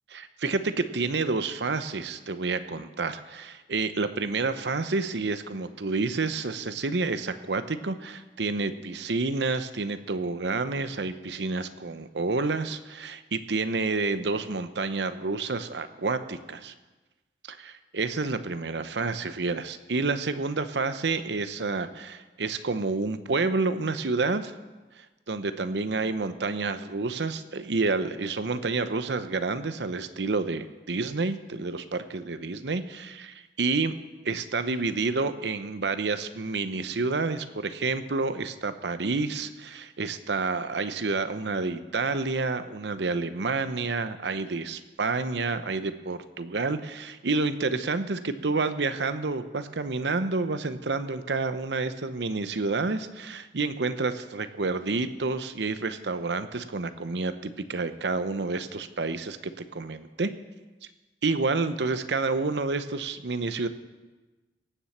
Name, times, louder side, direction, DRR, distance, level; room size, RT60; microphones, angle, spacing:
voice 1, 0.4-16.7 17.5-24.5 25.3-33.9 34.2-60.3 61.2-63.7, right 3 dB, 85° right, 11 dB, 0.8 m, -29 dB
18.0 x 7.3 x 7.3 m, 1.2 s
head